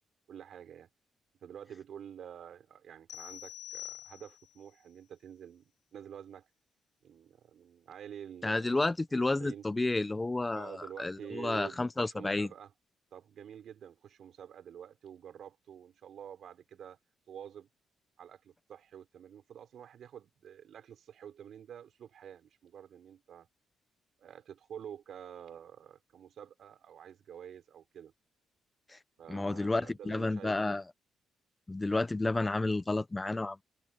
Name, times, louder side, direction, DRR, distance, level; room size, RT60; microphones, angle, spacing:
voice 1, 0.3-0.9 1.4-6.5 7.0-9.6 10.6-12.7 13.1-17.0 17.3-17.7 18.2-23.5 24.2-28.1 29.2-30.8, right 9 dB, 65° right, 5.8 m, -48 dB
sound 1, 3.1-4.6, left 12 dB, 80° left, 7.9 m, -45 dB
voice 2, 8.4-12.5 28.9-29.0 29.3-30.8 31.7-33.6, left 2 dB, 20° left, 0.7 m, -31 dB
cardioid pair, 90°, 0 cm